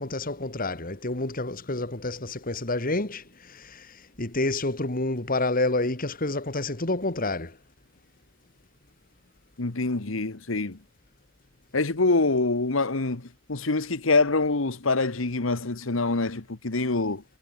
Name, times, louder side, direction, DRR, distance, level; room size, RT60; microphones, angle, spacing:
voice 1, 0.0-7.5, left 2 dB, 45° left, 2.3 m, -29 dB
voice 2, 9.6-10.8 11.7-17.2, left 3 dB, 75° left, 1.4 m, -25 dB
head